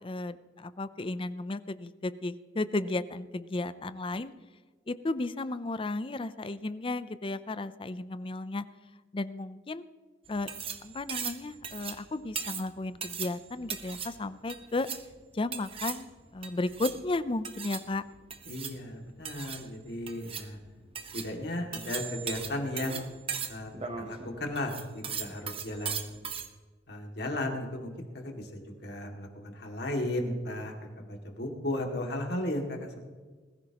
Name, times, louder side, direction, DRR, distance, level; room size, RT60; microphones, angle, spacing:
voice 1, 0.0-4.3 4.9-8.6 9.1-9.8 10.3-10.5 10.8-14.9 15.3-18.0, left 2 dB, 30° left, 14 dB, 0.5 m, -34 dB
sound 1, 10.3-26.5, right 7 dB, 30° right, 1.0 m, -39 dB
voice 2, 18.5-20.6 21.1-23.0 23.5-23.7 24.0-26.2 26.9-33.0, left 1 dB, 65° left, 2 dB, 2.3 m, -35 dB
21.0 x 14.5 x 3.0 m, 1.4 s
head